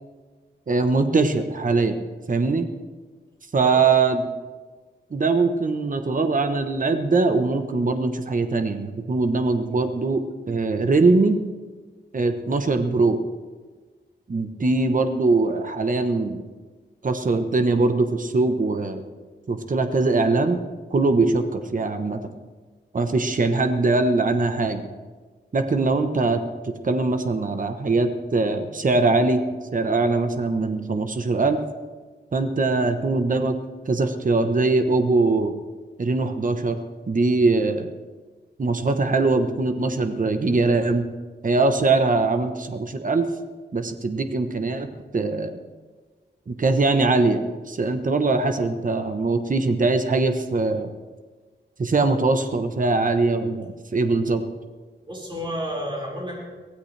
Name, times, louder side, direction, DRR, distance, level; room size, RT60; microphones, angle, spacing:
voice 1, 0.7-2.0 2.3-2.7 3.5-4.2 5.1-10.2 10.5-11.4 12.1-13.2 14.3-16.4 17.0-19.0 19.5-20.6 20.9-22.2 22.9-24.9 25.5-26.4 26.8-29.4 29.7-31.6 32.3-33.5 33.9-35.6 36.0-36.8 37.1-37.9 38.6-41.1 41.4-43.3 43.7-44.9 45.1-45.5 46.5-50.9 51.8-54.5, right 3 dB, 45° right, 7 dB, 1.0 m, -22 dB
voice 2, 3.6-4.0 55.1-56.4, equal, 25° right, -3 dB, 5.1 m, -31 dB
23.5 x 16.0 x 3.3 m, 1.4 s
wide cardioid pair, 130°, 19 cm